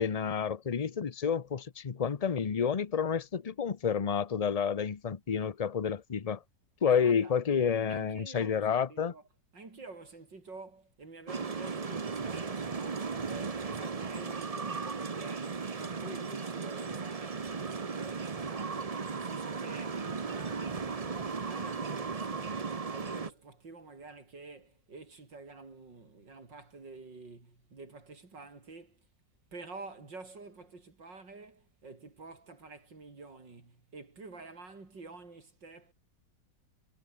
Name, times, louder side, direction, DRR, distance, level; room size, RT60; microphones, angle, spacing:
voice 1, 0.0-6.4 6.8-9.1, left 7 dB, 45° left, 0.4 m, -30 dB
voice 2, 6.9-7.4 7.9-9.2 9.5-29.1 29.5-35.9, right 3 dB, 80° right, 5.1 m, -49 dB
sound 1, 11.3-23.3, right 5 dB, 30° right, 0.7 m, -36 dB
omnidirectional pair, 1.9 m